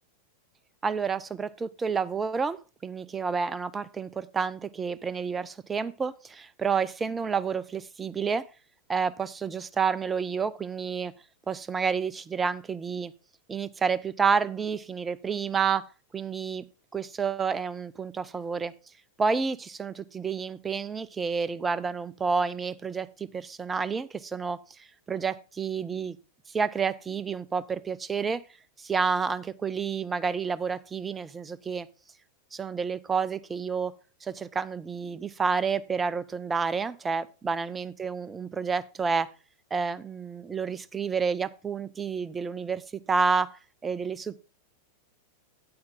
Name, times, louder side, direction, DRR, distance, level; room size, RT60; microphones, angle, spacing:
voice 1, 0.8-8.4 8.9-11.1 11.5-13.1 13.5-15.8 16.1-16.6 16.9-18.7 19.2-26.2 26.5-28.4 28.8-31.9 32.5-33.9 34.2-39.3 39.7-42.8 43.1-44.4, right 5 dB, 15° right, 0.5 m, -29 dB
8.7 x 8.5 x 3.7 m
figure-of-eight pair, 90°, 0 cm